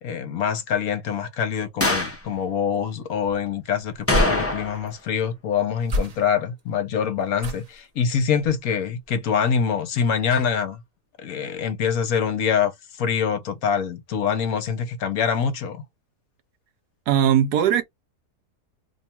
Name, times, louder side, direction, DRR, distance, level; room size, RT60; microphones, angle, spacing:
voice 1, 0.0-10.8 11.2-15.8, left 7 dB, 65° left, 1.2 m, -25 dB
sound 1, 1.8-2.2 4.1-4.9 5.2-5.3 10.3-10.4, left 2 dB, 20° left, 0.3 m, -24 dB
sound 2, 3.3-4.9 5.8-6.6 7.4-7.9 8.4-8.7 9.0-9.1, left 1 dB, 45° right, 0.5 m, -30 dB
voice 2, 17.1-17.8, right 9 dB, 75° right, 1.3 m, -19 dB
3.0 x 2.4 x 4.3 m
omnidirectional pair, 1.7 m